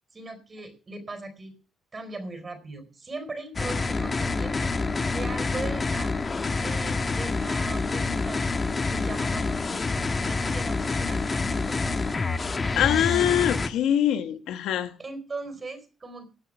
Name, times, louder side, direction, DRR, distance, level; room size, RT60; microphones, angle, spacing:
voice 1, 0.1-1.5 1.9-4.7 5.1-6.1 6.6-8.6 8.9-12.2 15.0-16.3, right 3 dB, 30° right, 4.2 m, -39 dB
sound 1, 3.6-13.7, left 3 dB, 30° left, 1.4 m, -27 dB
voice 2, 12.8-14.9, left 10 dB, 85° left, 1.2 m, -23 dB
18.0 x 6.1 x 6.6 m
cardioid pair, 90°, 0 cm